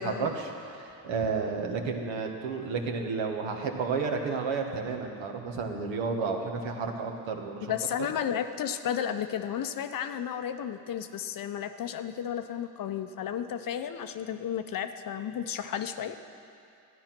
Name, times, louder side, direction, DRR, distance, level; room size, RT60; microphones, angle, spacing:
voice 1, 0.0-7.7, right 4 dB, 70° right, 3 dB, 1.7 m, -31 dB
voice 2, 7.6-16.2, left 9 dB, 45° left, 9 dB, 0.8 m, -33 dB
13.0 x 9.6 x 6.0 m, 2.5 s
supercardioid pair, 75°, 47 cm